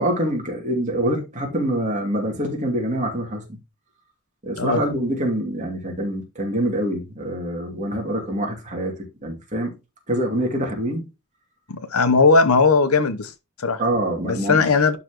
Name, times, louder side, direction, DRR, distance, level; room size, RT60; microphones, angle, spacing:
voice 1, 0.0-3.6 4.4-9.7 10.1-11.1 13.8-14.7, right 1 dB, 35° right, 2.5 m, -25 dB
voice 2, 11.7-13.3 13.6-13.8 14.2-15.0, left 4 dB, 85° left, 0.9 m, -18 dB
11.5 x 4.1 x 3.0 m
head